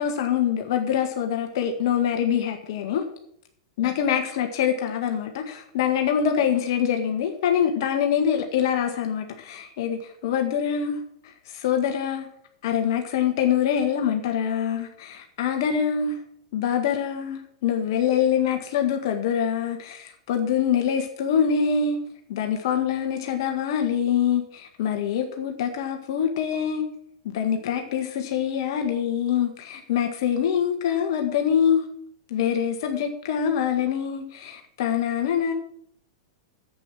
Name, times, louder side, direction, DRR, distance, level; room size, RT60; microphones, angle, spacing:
voice 1, 0.0-3.0 3.8-11.0 11.2-12.3 12.6-16.2 16.5-22.0 22.3-26.9 27.3-31.9 32.3-35.5, left 8 dB, 60° left, 4 dB, 1.6 m, -24 dB
10.5 x 8.2 x 6.1 m, 0.70 s
hypercardioid pair, 105°, 3 cm